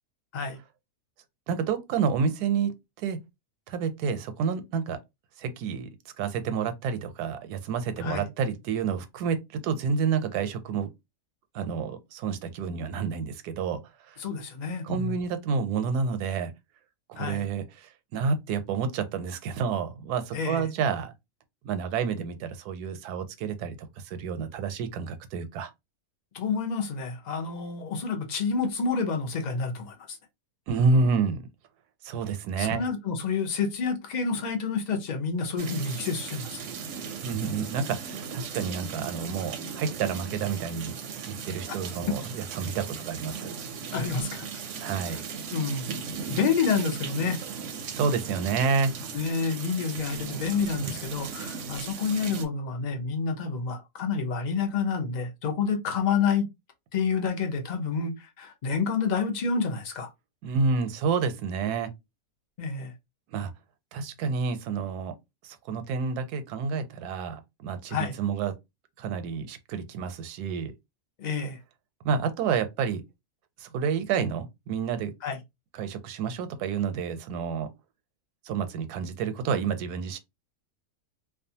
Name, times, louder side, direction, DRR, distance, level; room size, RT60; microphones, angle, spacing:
voice 1, 1.5-3.2 3.7-5.0 5.4-5.9 6.2-10.9 11.5-13.8 14.1-14.2 14.8-16.5 17.1-21.1 21.6-25.7 30.7-31.5 32.0-32.8 37.2-41.0 41.2-43.5 44.8-45.2 47.9-49.0 60.4-61.9 63.3-63.5 63.9-65.1 65.7-68.5 69.0-70.7 72.0-73.0 73.6-75.1 75.8-77.7 78.5-80.2, right 5 dB, 85° right, 1.1 m, -29 dB
voice 2, 14.2-15.2 17.2-17.4 20.3-20.7 26.3-30.2 32.6-36.6 43.9-44.5 45.1-45.8 46.3-47.4 49.1-56.5 56.9-60.1 62.6-62.9 67.9-68.2 71.2-71.6 75.2-75.4, left 5 dB, 65° left, 0.4 m, -29 dB
sound 1, 35.6-52.4, right 6 dB, 65° right, 0.8 m, -37 dB
2.5 x 2.3 x 2.7 m
omnidirectional pair, 1.6 m